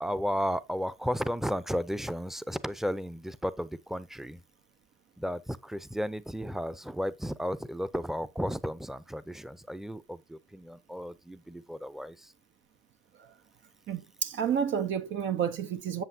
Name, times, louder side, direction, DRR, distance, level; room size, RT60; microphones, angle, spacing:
voice 1, 0.0-4.4 5.2-12.3, equal, ahead, 0.6 m, -34 dB
voice 2, 13.9-16.0, right 8 dB, 75° right, 0.8 m, -30 dB
8.0 x 7.0 x 2.7 m
cardioid pair, 90°, 20 cm